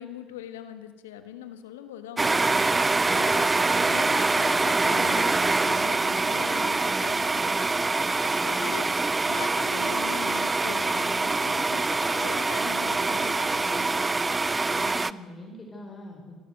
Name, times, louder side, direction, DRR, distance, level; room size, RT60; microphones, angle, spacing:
voice 1, 0.0-2.7 3.1-7.7 8.2-8.9 9.2-14.0, left 10 dB, 80° left, 10 dB, 1.4 m, -41 dB
sound 1, 2.2-15.1, right 3 dB, 20° right, 0.6 m, -24 dB
voice 2, 8.5-8.9 14.7-16.4, left 1 dB, 25° left, 1 dB, 5.2 m, -43 dB
28.5 x 12.5 x 8.0 m, 1.4 s
hypercardioid pair, 55°, 0 cm